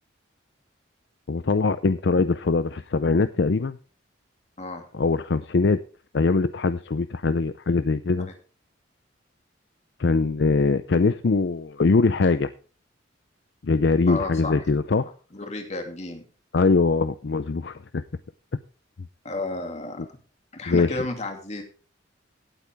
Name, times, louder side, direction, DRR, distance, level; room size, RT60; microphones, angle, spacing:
voice 1, 1.3-3.8 4.9-5.8 6.1-8.3 10.0-12.5 13.6-15.1 16.5-18.0 20.7-21.0, left 3 dB, 60° left, 13 dB, 0.5 m, -22 dB
voice 2, 4.6-4.9 14.1-14.6 15.3-16.3 19.2-20.0 20.5-21.6, left 2 dB, 35° left, 4 dB, 2.5 m, -32 dB
17.0 x 8.5 x 3.5 m, 0.38 s
head